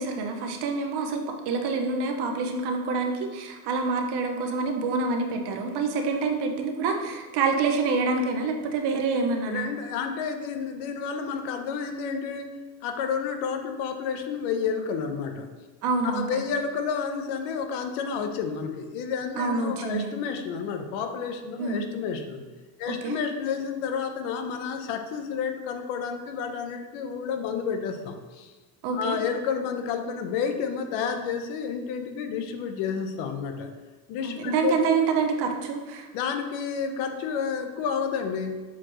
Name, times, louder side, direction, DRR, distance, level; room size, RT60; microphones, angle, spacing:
voice 1, 0.0-9.7 15.8-16.4 19.3-20.1 21.6-21.9 22.9-23.2 28.8-29.2 34.2-36.1, right 4 dB, 55° right, 4 dB, 1.0 m, -27 dB
voice 2, 9.5-12.5 12.8-15.5 16.0-22.4 22.8-28.5 28.9-33.7 34.1-34.8 36.1-38.6, left 6 dB, 70° left, 6 dB, 0.9 m, -30 dB
7.2 x 4.4 x 3.1 m, 1.3 s
cardioid pair, 140°, 49 cm